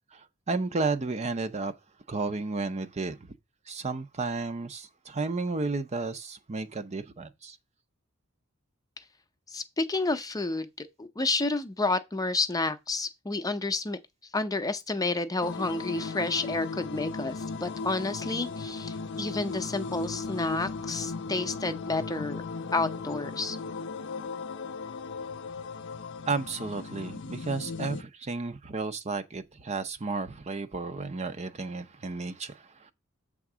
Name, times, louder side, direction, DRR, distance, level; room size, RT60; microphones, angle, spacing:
voice 1, 0.1-1.7 2.1-3.2 3.7-7.6 26.3-32.9, right 3 dB, 30° right, 0.6 m, -32 dB
voice 2, 9.5-14.0 14.3-22.4 22.7-23.6, left 3 dB, 15° left, 0.6 m, -30 dB
sound 1, 15.4-28.0, left 4 dB, 60° left, 0.6 m, -37 dB
7.5 x 3.7 x 6.0 m
head